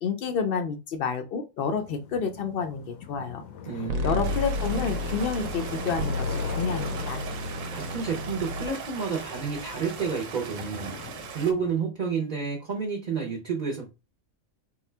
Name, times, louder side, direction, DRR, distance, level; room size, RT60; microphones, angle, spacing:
voice 1, 0.0-3.5 4.0-7.2, left 5 dB, 65° left, 0.5 m, -29 dB
sound 1, 1.6-11.8, left 7 dB, 85° left, 1.1 m, -41 dB
voice 2, 3.7-4.4 7.7-11.0 11.3-13.9, right 5 dB, 45° right, 0.7 m, -30 dB
sound 2, 3.9-8.7, left 1 dB, 85° right, 1.1 m, -31 dB
Stream, 4.2-11.5, right 6 dB, 70° right, 1.0 m, -40 dB
3.7 x 2.3 x 3.2 m
omnidirectional pair, 1.4 m